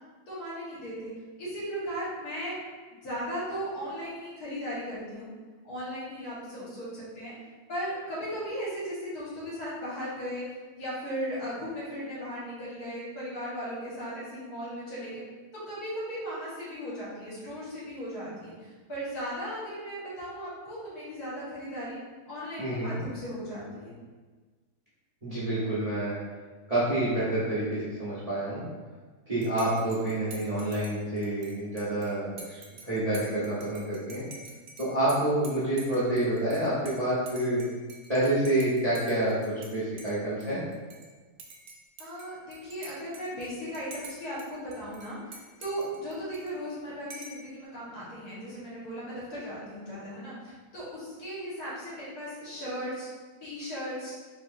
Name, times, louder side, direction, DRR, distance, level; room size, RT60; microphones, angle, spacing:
voice 1, 0.3-1.1 1.4-2.6 2.9-5.3 5.6-7.3 7.7-10.4 10.8-15.2 15.5-22.0 22.3-24.0 42.0-53.1 53.4-54.1, equal, 70° left, -9 dB, 1.9 m, -37 dB
voice 2, 22.6-23.0 25.2-26.1 26.7-28.6 29.3-34.2 34.8-37.6 38.1-39.4 39.7-40.6, right 1 dB, 30° right, -11 dB, 0.8 m, -28 dB
Dishes pots and pans / Cutlery silverware / Chink clink, 29.4-39.7 40.0-41.1 41.4-44.5 44.7-46.7 47.1-47.5, right 3 dB, 70° right, 0.6 m, -48 dB
4.3 x 2.9 x 2.6 m, 1.4 s
omnidirectional pair, 1.7 m